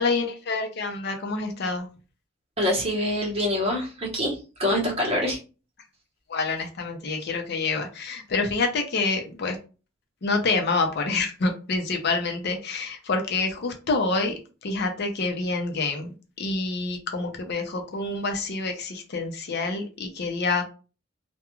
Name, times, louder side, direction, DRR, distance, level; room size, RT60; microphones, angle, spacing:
voice 1, 0.0-1.9 6.3-9.6 10.2-20.7, left 3 dB, 60° left, 4 dB, 0.6 m, -27 dB
voice 2, 2.6-5.4, left 1 dB, 30° right, -1 dB, 0.9 m, -25 dB
2.3 x 2.2 x 3.0 m, 0.33 s
head